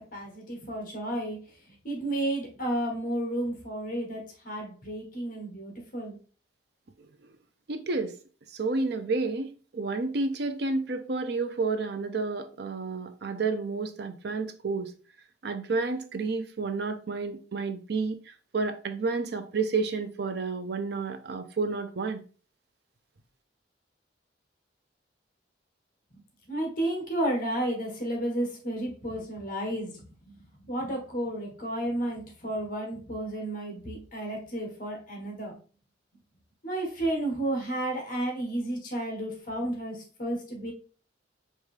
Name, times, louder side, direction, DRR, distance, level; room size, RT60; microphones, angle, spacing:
voice 1, 0.1-1.4 1.8-6.2 26.5-30.3 30.7-35.6 36.6-40.7, right 1 dB, 45° left, 1.2 m, -32 dB
voice 2, 7.7-8.1 8.5-14.9 15.4-18.2 18.5-22.2, right 4 dB, 60° right, 0.5 m, -30 dB
4.7 x 2.7 x 3.2 m
head